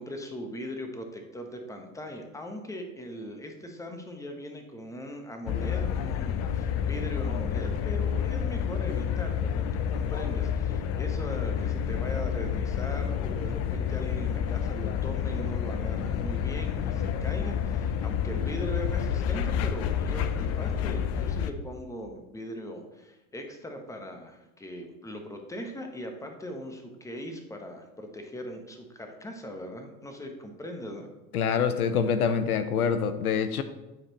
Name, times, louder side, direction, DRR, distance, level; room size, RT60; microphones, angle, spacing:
voice 1, 0.0-31.1, equal, 5° left, 4 dB, 1.0 m, -40 dB
sound 1, 5.5-21.5, left 8 dB, 35° left, 0.5 m, -29 dB
voice 2, 31.3-33.6, left 7 dB, 85° left, 11 dB, 0.6 m, -25 dB
9.6 x 4.4 x 3.0 m, 1.0 s
hypercardioid pair, 90°, 43 cm